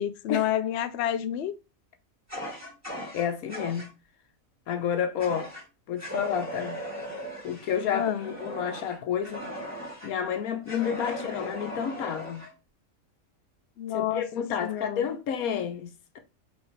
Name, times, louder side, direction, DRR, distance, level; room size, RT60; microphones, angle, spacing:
voice 1, 0.0-1.5 7.9-8.3 11.0-11.1 13.8-14.3 14.6-15.1, left 10 dB, 65° left, 0.7 m, -29 dB
Fire, 2.3-3.9 5.2-5.6 6.0-10.1 10.7-12.5, equal, 10° right, 2.2 m, -38 dB
voice 2, 3.1-3.9 4.7-5.5 5.9-6.9 7.4-9.5 10.0-12.5 13.9-16.2, left 8 dB, 85° left, 1.3 m, -30 dB
4.4 x 3.5 x 3.2 m
omnidirectional pair, 1.5 m